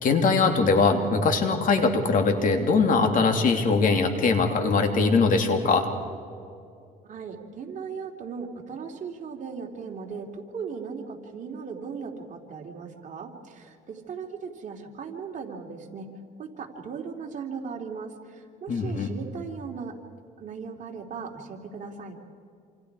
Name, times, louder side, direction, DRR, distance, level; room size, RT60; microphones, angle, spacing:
voice 1, 0.0-5.9 18.7-19.2, left 4 dB, 50° left, 5 dB, 2.9 m, -22 dB
voice 2, 7.0-16.1 16.4-19.9 20.4-22.2, right 5 dB, 45° right, 2 dB, 3.0 m, -37 dB
27.5 x 27.5 x 4.8 m, 2.4 s
cardioid pair, 110°, 17 cm